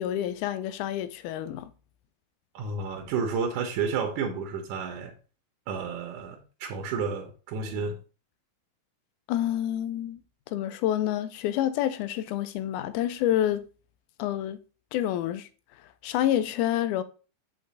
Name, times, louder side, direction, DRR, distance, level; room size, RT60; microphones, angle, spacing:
voice 1, 0.0-1.7 9.3-10.2 10.5-13.6 14.2-14.6 14.9-15.5 16.0-17.0, left 12 dB, 85° left, 2.1 m, -28 dB
voice 2, 2.5-5.2 5.7-8.0, right 5 dB, 80° right, 2.3 m, -31 dB
7.6 x 3.8 x 4.0 m
omnidirectional pair, 3.5 m